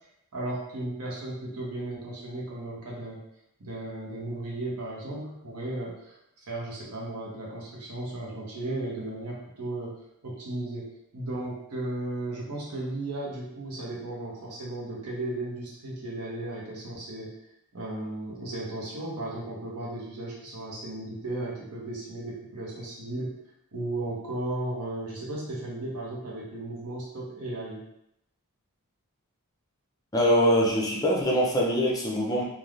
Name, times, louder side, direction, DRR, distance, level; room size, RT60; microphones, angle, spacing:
voice 1, 0.3-3.2 3.6-10.9 11.1-17.4 17.7-23.3 23.7-27.9, right 1 dB, 85° right, -3 dB, 0.9 m, -35 dB
voice 2, 30.1-32.4, equal, 15° left, -3 dB, 0.4 m, -23 dB
3.3 x 2.3 x 2.5 m, 0.79 s
head